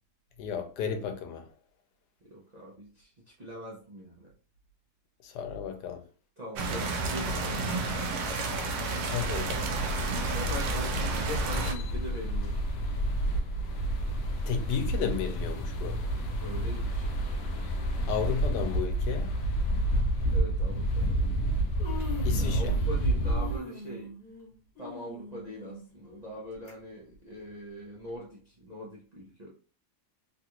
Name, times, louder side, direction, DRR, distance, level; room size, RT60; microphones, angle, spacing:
voice 1, 0.4-1.5 5.2-6.0 9.0-9.5 14.5-16.0 18.1-19.3 22.2-22.7, left 6 dB, 85° left, 1.2 m, -33 dB
voice 2, 2.3-4.3 6.4-8.2 10.2-12.6 16.4-17.1 20.3-21.2 22.4-24.1 24.8-29.5, equal, 50° right, 0.5 m, -42 dB
sound 1, 6.6-11.7, right 3 dB, 75° right, 1.0 m, -31 dB
sound 2, 9.2-23.6, right 1 dB, 65° left, 1.0 m, -29 dB
Human voice, 18.0-18.2 19.2-19.3 19.9-20.1 21.1-21.2 21.5-22.9 23.2-26.7 27.1-27.2 28.1-28.2, left 2 dB, 40° left, 1.6 m, -43 dB
3.2 x 2.4 x 2.9 m
omnidirectional pair, 1.7 m